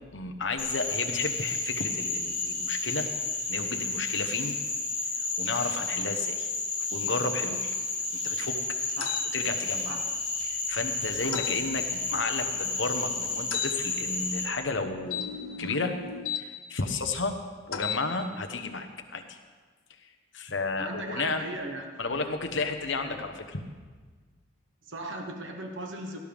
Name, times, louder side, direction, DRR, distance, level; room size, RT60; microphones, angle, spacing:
voice 1, 0.1-3.1 3.5-4.5 5.4-6.5 6.9-7.7 8.1-8.8 9.3-9.9 10.4-15.3 15.6-16.0 16.3-17.3 17.7-19.4 20.3-21.5 22.0-23.6, left 3 dB, 65° left, 6 dB, 1.1 m, -32 dB
Frog, 0.6-14.4, left 3 dB, 30° left, 4.5 m, -31 dB
sound 1, 9.0-9.3 11.3-11.6 13.5-13.7 15.1-16.4 17.7-18.0, left 8 dB, 85° left, 0.8 m, -34 dB
voice 2, 20.8-21.8 22.1-22.4 23.0-23.1 24.8-26.2, right 1 dB, 65° right, 3 dB, 1.2 m, -38 dB
18.0 x 12.0 x 3.5 m, 1.4 s
head